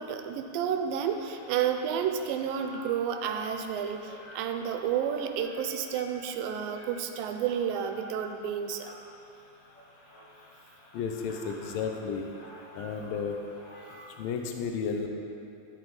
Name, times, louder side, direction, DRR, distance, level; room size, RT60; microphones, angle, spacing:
voice 1, 0.0-8.9, right 8 dB, 85° right, 6 dB, 2.3 m, -31 dB
sound 1, 0.9-14.4, left 1 dB, 55° left, 1.7 m, -51 dB
voice 2, 10.9-12.2 12.8-13.4 14.2-15.1, left 6 dB, 80° left, 3 dB, 2.4 m, -32 dB
13.5 x 8.1 x 4.0 m, 2.7 s
omnidirectional pair, 4.2 m